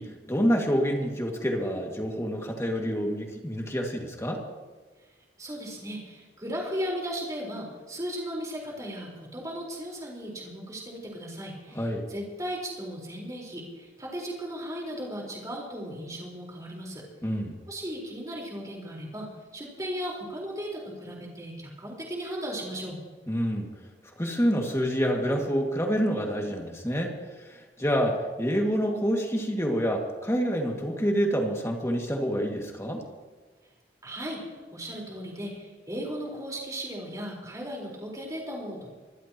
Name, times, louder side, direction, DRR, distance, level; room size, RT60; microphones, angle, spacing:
voice 1, 0.0-4.4 11.7-12.0 17.2-17.6 23.3-23.7 24.2-33.0, equal, 15° left, 1 dB, 2.1 m, -27 dB
voice 2, 5.4-17.0 17.7-19.3 19.5-23.0 34.0-38.9, equal, 20° right, -2 dB, 4.4 m, -36 dB
24.5 x 15.5 x 3.0 m, 1.4 s
head